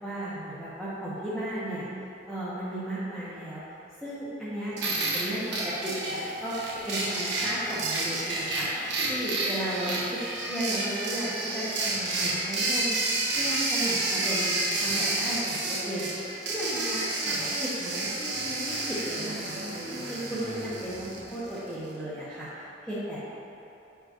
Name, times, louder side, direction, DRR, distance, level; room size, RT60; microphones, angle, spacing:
voice 1, 0.0-1.9 2.3-3.6 4.0-13.0 13.4-23.3, right 1 dB, ahead, -13 dB, 1.0 m, -35 dB
sound 1, 4.8-21.7, right 2 dB, 75° right, 1.1 m, -30 dB
8.2 x 5.8 x 2.9 m, 2.8 s
head